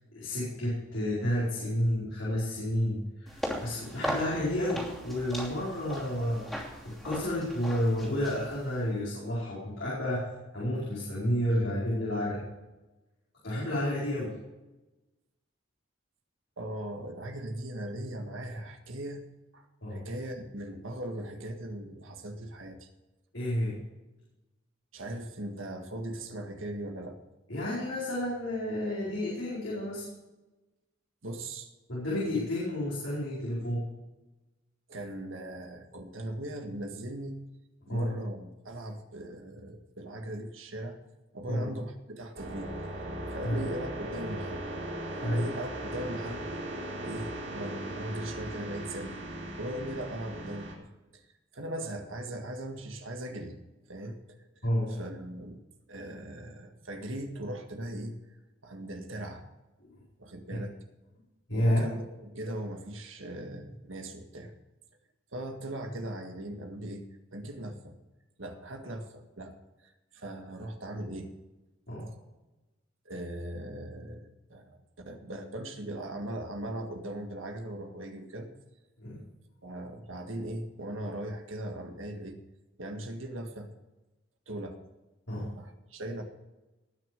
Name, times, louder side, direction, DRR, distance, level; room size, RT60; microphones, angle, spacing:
voice 1, 0.1-12.4 13.4-14.3 19.8-20.0 23.3-23.8 27.5-30.0 31.9-33.8 37.9-38.1 41.4-41.7 43.4-43.6 45.2-45.4 54.6-54.9 60.5-60.6 61.5-61.8 71.9-72.1 79.0-79.2 85.3-85.5, left 1 dB, 75° left, -7 dB, 4.9 m, -30 dB
sound 1, 3.3-8.9, equal, ahead, 2.9 m, -38 dB
voice 2, 16.6-19.2 19.5-22.9 24.9-27.2 31.2-31.7 34.9-37.4 37.9-41.0 41.3-42.8 43.3-44.6 45.2-46.4 47.0-49.2 49.6-50.9 51.5-53.6 53.9-54.5 54.9-55.6 55.9-58.4 58.6-59.4 60.2-60.7 61.5-64.5 65.3-68.0 68.4-69.5 69.8-71.3 73.1-74.8 75.1-78.5 79.6-82.4 82.8-83.7 84.5-84.8 85.6-86.2, right 1 dB, 90° right, 5 dB, 1.8 m, -39 dB
sound 2, 42.3-50.7, right 1 dB, 60° right, 4.1 m, -38 dB
19.5 x 6.5 x 5.3 m, 1.1 s
head